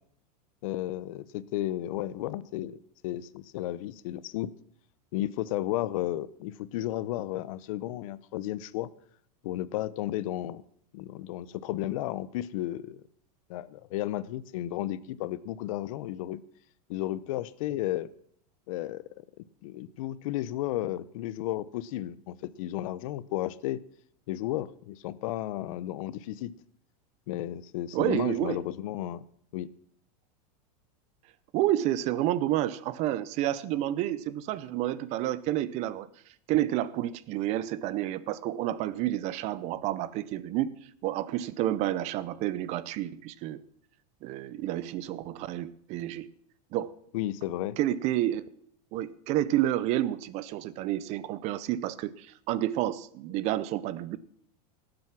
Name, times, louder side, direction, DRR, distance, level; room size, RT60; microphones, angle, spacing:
voice 1, 0.6-2.8 3.0-4.5 5.1-8.9 9.4-10.6 10.9-13.0 13.5-16.4 16.9-18.1 18.7-19.2 19.6-23.8 24.3-26.5 27.3-29.3 29.5-29.7 47.1-47.8, left 14 dB, 55° left, 18 dB, 0.7 m, -33 dB
voice 2, 27.9-28.6 31.5-36.1 36.5-40.8 41.0-43.6 44.2-46.3 46.7-46.9 47.8-48.4 48.9-54.2, right 13 dB, 35° right, 18 dB, 0.7 m, -30 dB
17.5 x 7.8 x 6.0 m, 0.65 s
supercardioid pair, 160°, 20 cm